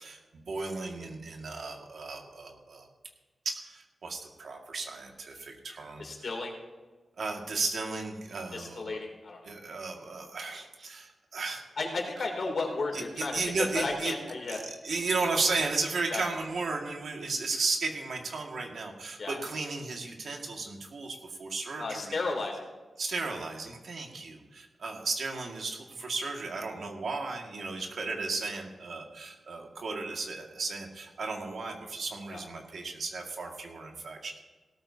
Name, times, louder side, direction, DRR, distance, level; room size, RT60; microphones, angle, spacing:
voice 1, 0.0-2.9 3.5-6.3 7.2-9.0 9.4-11.6 12.2-12.3 12.9-14.1 14.5-22.2 23.0-34.4, right 3 dB, 65° right, 1 dB, 2.0 m, -34 dB
voice 2, 6.0-6.5 8.5-9.5 11.8-13.4 13.7-14.6 16.1-16.2 19.2-19.4 21.8-22.6 32.3-32.4, left 3 dB, 55° left, 2 dB, 3.0 m, -33 dB
17.5 x 13.5 x 2.8 m, 1.3 s
wide cardioid pair, 140°, 0 cm